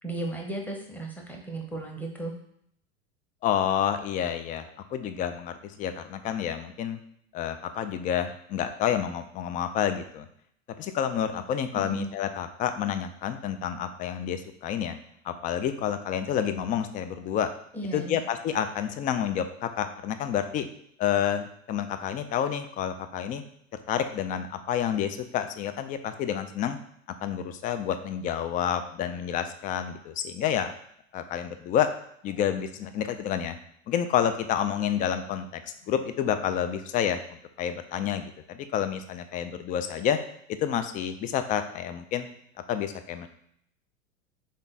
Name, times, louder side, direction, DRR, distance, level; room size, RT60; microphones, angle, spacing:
voice 1, 0.0-2.3 11.8-12.1 17.7-18.2, right 2 dB, 5° left, 1 dB, 0.9 m, -35 dB
voice 2, 3.4-7.0 7.3-10.3 10.8-15.0 15.2-17.5 17.9-20.7 21.0-23.4 23.9-26.8 27.2-30.7 31.1-31.9 32.2-33.6 33.9-37.2 37.6-40.2 40.6-42.3 42.7-43.3, left 9 dB, 25° left, 9 dB, 0.3 m, -29 dB
3.7 x 3.5 x 4.0 m, 0.69 s
hypercardioid pair, 95°, 37 cm